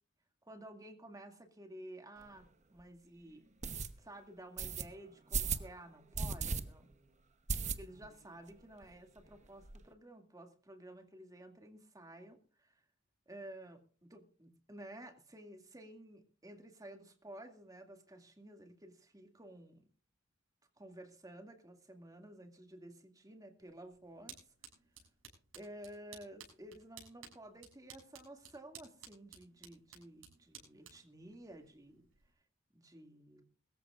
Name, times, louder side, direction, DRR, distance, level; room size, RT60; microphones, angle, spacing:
voice 1, 0.4-3.4 4.0-6.9 7.7-12.8 13.3-19.8 20.8-24.4 25.5-32.1 32.7-33.5, right 1 dB, 20° right, 5 dB, 2.3 m, -53 dB
sound 1, 2.2-2.3 2.8-2.9 3.6-3.9 4.6-4.8 5.3-5.7 6.1-6.6 6.9-7.0 7.5-8.1 8.5-8.6 8.8-8.9 9.2-9.8, right 5 dB, 35° right, 1.0 m, -36 dB
sound 2, 23.6-32.3, right 7 dB, 85° right, 6.9 m, -57 dB
22.5 x 14.5 x 2.5 m, 0.39 s
head